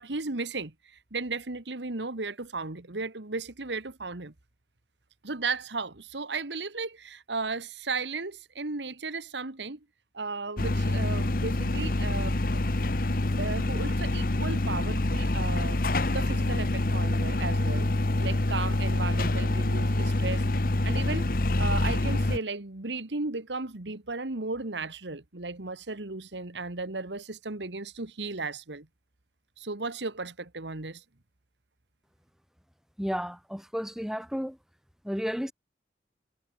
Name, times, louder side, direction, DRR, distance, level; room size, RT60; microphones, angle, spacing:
voice 1, 0.0-4.3 5.2-9.8 10.1-12.4 13.4-17.9 18.2-20.4 20.8-21.3 21.6-28.9 29.6-31.0, right 3 dB, 90° right, 1.8 m, -35 dB
sound 1, 10.6-22.4, left 2 dB, 55° left, 1.1 m, -26 dB
voice 2, 33.0-34.6 35.0-35.5, equal, 5° right, 2.5 m, -32 dB
head